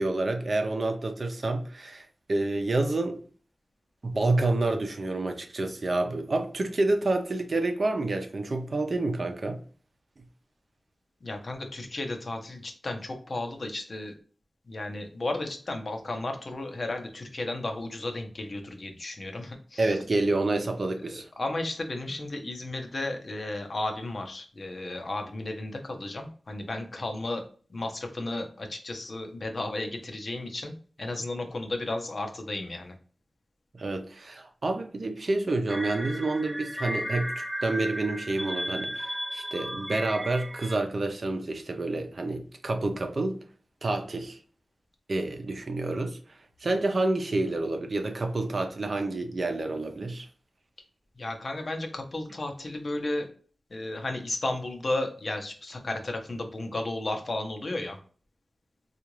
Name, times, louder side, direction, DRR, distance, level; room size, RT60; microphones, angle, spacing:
voice 1, 0.0-3.2 4.0-9.6 19.8-21.3 33.7-43.4 43.8-44.4 45.1-50.3, right 2 dB, 60° right, 0.6 m, -28 dB
voice 2, 11.2-14.1 14.7-20.0 21.1-27.4 27.7-30.7 31.0-32.9 51.2-53.3 53.7-58.0, left 2 dB, 60° left, 0.7 m, -34 dB
sound 1, 35.7-40.8, equal, 5° right, 0.5 m, -35 dB
3.6 x 2.4 x 3.0 m
cardioid pair, 50°, 0 cm